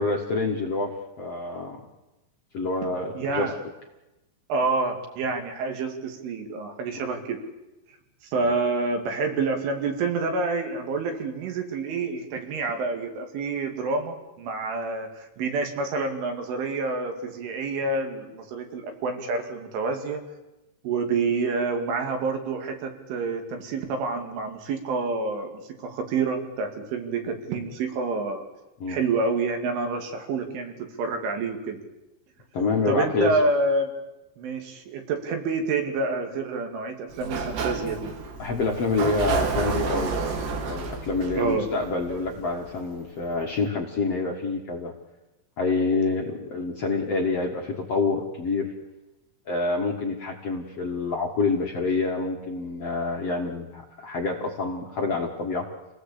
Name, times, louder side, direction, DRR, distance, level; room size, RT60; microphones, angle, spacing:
voice 1, 0.0-1.8 2.5-3.5 8.4-8.5 28.8-29.0 32.5-33.4 38.4-40.2 40.6-44.9 45.6-48.7 49.5-55.7, left 3 dB, 55° left, 0 dB, 1.8 m, -27 dB
voice 2, 3.2-3.6 4.5-7.4 8.2-20.2 20.8-28.4 28.9-31.8 32.9-33.9 34.4-38.1 41.4-41.7, right 3 dB, 85° right, 4 dB, 4.9 m, -28 dB
Sliding door, 37.1-42.8, right 4 dB, 65° right, 4.3 m, -30 dB
27.5 x 18.0 x 8.5 m, 1.0 s
omnidirectional pair, 5.4 m